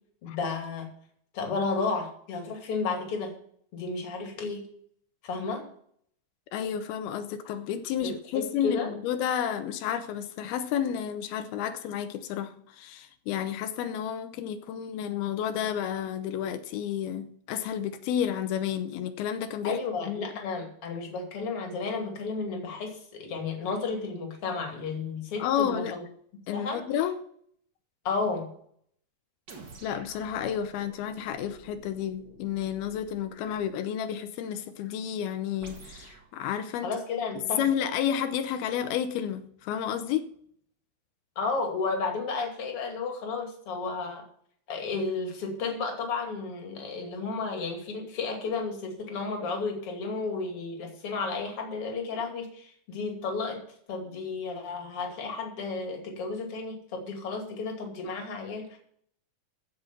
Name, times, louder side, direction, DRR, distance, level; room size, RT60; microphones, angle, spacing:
voice 1, 0.2-0.9 1.3-3.3 3.7-4.7 5.2-5.7 8.0-8.9 19.6-26.0 26.5-26.8 28.0-28.5 36.8-37.7 41.4-44.2 44.7-53.6 53.9-58.8, left 4 dB, 40° left, 3 dB, 3.0 m, -32 dB
voice 2, 6.5-19.8 20.1-20.2 25.4-26.0 26.5-27.2 29.8-36.9 37.6-40.3, left 9 dB, 85° left, 9 dB, 2.7 m, -31 dB
sound 1, 29.5-33.8 35.6-36.3, right 3 dB, 35° right, 1.9 m, -50 dB
15.0 x 6.0 x 6.9 m, 0.63 s
omnidirectional pair, 4.3 m